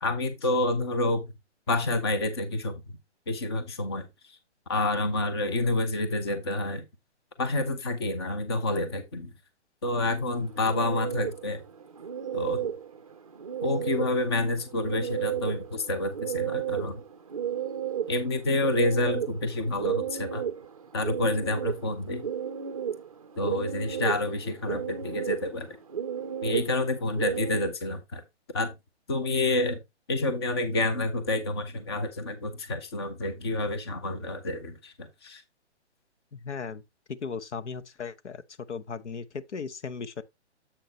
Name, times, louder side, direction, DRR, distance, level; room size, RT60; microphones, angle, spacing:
voice 1, 0.0-1.3 1.7-2.8 3.3-4.1 4.7-6.8 7.4-9.3 9.8-11.6 12.3-12.7 13.6-17.0 18.1-20.4 20.9-22.3 23.4-25.8 26.4-28.2 28.5-28.7 29.1-29.8 30.1-35.4, left 2 dB, 20° left, 0.8 m, -28 dB
sound 1, 10.1-27.7, right 9 dB, 30° right, 0.5 m, -34 dB
voice 2, 36.3-36.8 37.1-38.4 38.7-40.2, left 5 dB, 80° left, 1.0 m, -36 dB
7.7 x 6.6 x 3.0 m
hypercardioid pair, 175°, 35 cm